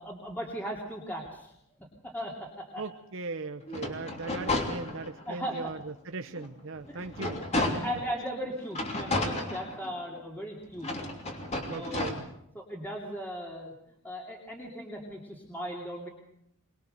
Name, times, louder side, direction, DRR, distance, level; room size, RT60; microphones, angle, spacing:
voice 1, 0.0-1.5 1.8-2.8 5.3-5.7 6.9-10.9 11.7-12.1 12.5-13.7 14.0-16.1, equal, 10° left, -1 dB, 2.8 m, -37 dB
voice 2, 2.8-7.4 11.7-12.2, right 3 dB, 60° right, 7 dB, 0.9 m, -38 dB
sound 1, 3.6-5.3 5.8-5.9 6.3-8.1 8.7-10.2 10.8-12.1, left 2 dB, 30° left, 3.1 m, -33 dB
23.5 x 21.0 x 6.7 m, 0.76 s
head